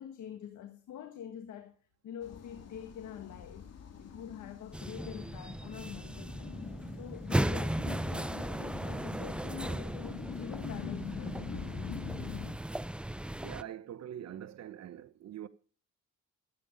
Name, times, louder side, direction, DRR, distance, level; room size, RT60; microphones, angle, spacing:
voice 1, 0.0-1.7 2.0-3.7 4.0-6.5 7.0-12.0, left 9 dB, 75° left, 1.6 m, -45 dB
sound 1, 2.2-12.5, left 6 dB, 55° left, 3.0 m, -45 dB
sound 2, 4.7-13.6, right 1 dB, 5° right, 0.5 m, -36 dB
voice 2, 13.4-15.5, right 10 dB, 60° right, 1.1 m, -44 dB
14.0 x 9.0 x 5.1 m
cardioid pair, 90°, 30 cm